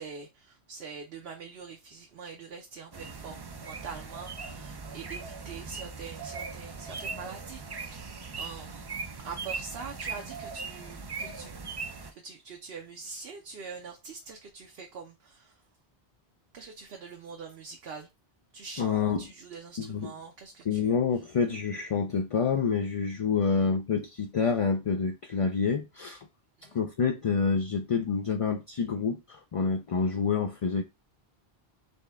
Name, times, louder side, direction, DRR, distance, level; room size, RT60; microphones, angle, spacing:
voice 1, 0.0-8.8 9.2-11.5 12.1-15.6 16.5-18.1 18.5-20.9 26.6-26.8, right 5 dB, 70° right, 0.9 m, -44 dB
sound 1, 2.9-12.1, right 4 dB, 40° right, 0.3 m, -39 dB
voice 2, 18.8-19.2 19.8-20.1 20.7-26.3 26.7-30.8, left 5 dB, 50° left, 0.4 m, -28 dB
4.3 x 3.2 x 3.4 m
omnidirectional pair, 1.1 m